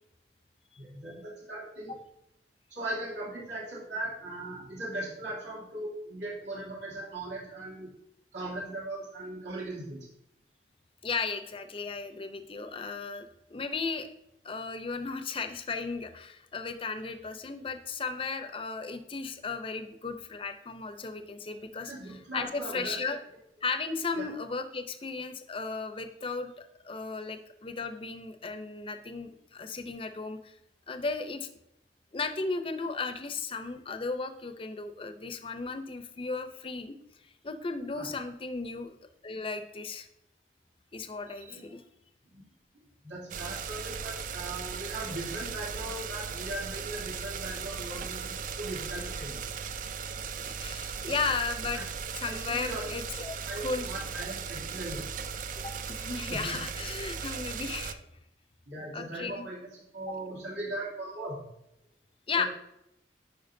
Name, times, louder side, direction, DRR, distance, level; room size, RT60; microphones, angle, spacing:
voice 1, 0.8-2.0 2.7-7.9 8.3-10.1 21.8-23.0 24.1-24.2 37.9-38.1 41.4-41.7 42.3-42.4 43.0-49.4 51.7-51.8 52.3-52.9 53.4-55.0 56.3-56.6 58.6-61.5 62.4-62.5, right 1 dB, 80° right, -5 dB, 2.7 m, -39 dB
voice 2, 11.0-14.1 14.4-23.2 23.6-26.5 26.8-30.6 30.9-31.5 32.1-37.0 37.4-39.0 39.2-40.1 40.9-41.8 50.4-51.8 52.2-53.9 55.6-58.0 58.9-59.5 60.1-60.2 62.3-62.4, left 4 dB, 30° left, 8 dB, 0.6 m, -35 dB
sound 1, 43.3-57.9, right 6 dB, 50° right, 0.4 m, -37 dB
10.5 x 4.8 x 2.6 m, 0.82 s
head